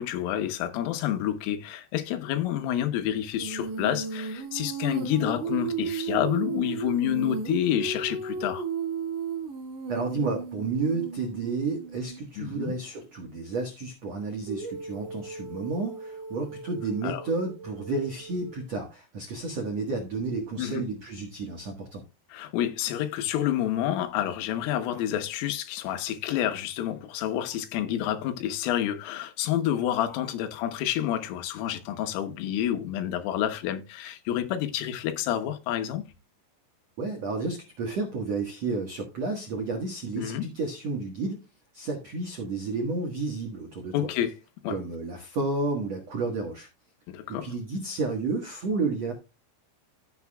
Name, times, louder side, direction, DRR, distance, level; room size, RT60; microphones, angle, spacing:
voice 1, 0.0-8.7 12.4-12.8 17.0-17.2 20.6-20.8 22.3-36.0 40.2-40.5 43.9-44.3 44.6-44.8 47.1-47.5, left 11 dB, 85° left, 3.7 m, -29 dB
Female singing, 3.4-12.3 14.5-18.7, right 5 dB, 50° right, 2.2 m, -35 dB
voice 2, 9.9-22.0 37.0-41.4 41.7-44.1 44.7-46.7 47.4-49.1, right 3 dB, 85° right, 1.4 m, -31 dB
15.5 x 7.1 x 2.3 m
omnidirectional pair, 5.7 m